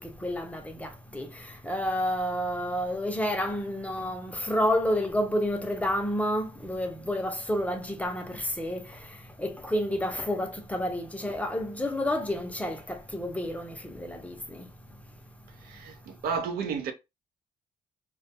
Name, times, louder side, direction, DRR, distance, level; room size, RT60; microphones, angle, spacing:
voice 1, 0.2-1.3 1.6-8.9 9.4-14.7, equal, 10° left, 0.5 m, -30 dB
voice 2, 15.6-16.9, right 6 dB, 70° right, 0.5 m, -32 dB
2.2 x 2.1 x 2.7 m
cardioid pair, 100°, 16 cm